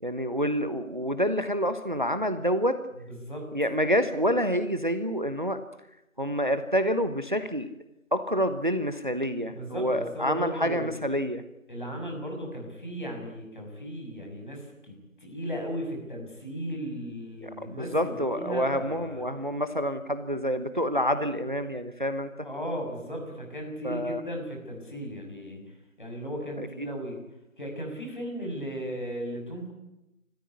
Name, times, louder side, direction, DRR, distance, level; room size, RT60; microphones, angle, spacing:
voice 1, 0.0-2.8 3.5-5.6 6.2-7.7 8.1-11.4 17.4-22.3 23.8-24.2 26.6-26.9, equal, 35° right, 10 dB, 1.1 m, -28 dB
voice 2, 3.1-3.5 9.5-10.9 11.7-19.2 22.4-25.6 26.0-27.2 27.6-29.7, equal, 35° left, 1 dB, 6.5 m, -36 dB
24.0 x 14.5 x 9.7 m, 0.89 s
figure-of-eight pair, 175°, 40 cm